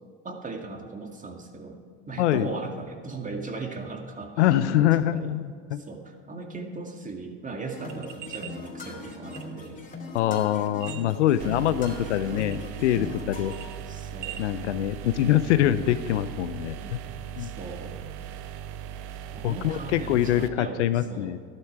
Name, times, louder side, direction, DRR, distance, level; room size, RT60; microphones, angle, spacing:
voice 1, 0.2-1.8 2.1-5.4 5.8-9.8 13.9-14.4 16.8-17.0 17.4-18.0 19.3-21.3, right 3 dB, 20° right, 3 dB, 2.2 m, -38 dB
voice 2, 2.2-2.5 4.4-5.8 10.1-13.6 14.4-17.0 17.4-17.5 19.4-21.4, left 12 dB, 80° left, 13 dB, 0.7 m, -24 dB
sound 1, 7.7-13.7, left 2 dB, 20° left, 2.8 m, -40 dB
sound 2, 7.8-8.6 9.0-9.8 10.7-11.4 11.9-12.0 12.4-13.0 13.2-14.4, right 12 dB, 90° right, 0.7 m, -41 dB
sound 3, 11.4-20.5, right 9 dB, 65° right, 0.9 m, -39 dB
13.5 x 12.0 x 4.8 m, 2.1 s
hypercardioid pair, 80°, 35 cm